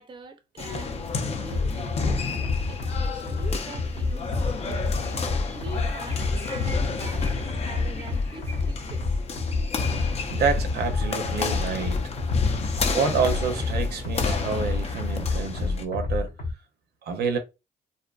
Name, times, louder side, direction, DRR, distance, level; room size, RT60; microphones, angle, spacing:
voice 1, 0.0-4.8 5.5-9.0 11.8-11.9 12.8-12.9, right 4 dB, 30° right, 0.4 m, -44 dB
sound 1, 0.6-15.8, left 4 dB, 40° left, 0.5 m, -31 dB
sound 2, 1.5-16.5, left 3 dB, 90° left, 0.9 m, -28 dB
sound 3, 3.9-9.0, equal, 10° left, 0.8 m, -48 dB
voice 2, 10.0-12.0 12.9-16.3 17.0-17.4, right 5 dB, 85° right, 0.5 m, -28 dB
2.6 x 2.3 x 2.3 m
cardioid pair, 100°, 16 cm